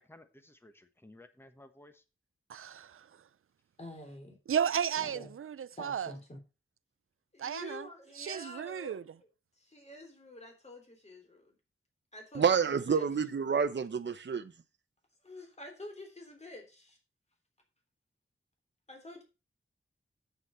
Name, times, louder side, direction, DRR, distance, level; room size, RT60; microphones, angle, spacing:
voice 1, 0.0-2.0, left 1 dB, 10° left, 1.2 m, -56 dB
voice 2, 2.5-3.1 4.5-6.1 7.4-7.9 8.2-9.0, right 8 dB, 90° right, 0.5 m, -34 dB
voice 3, 3.8-4.4 5.0-5.3 5.8-6.4 7.3-9.0 9.6-11.6 12.1-13.1 15.2-17.0 18.9-19.2, left 1 dB, 30° left, 3.4 m, -48 dB
voice 4, 12.3-14.5, right 6 dB, 60° right, 0.8 m, -28 dB
9.0 x 8.2 x 4.4 m
wide cardioid pair, 105°, 21 cm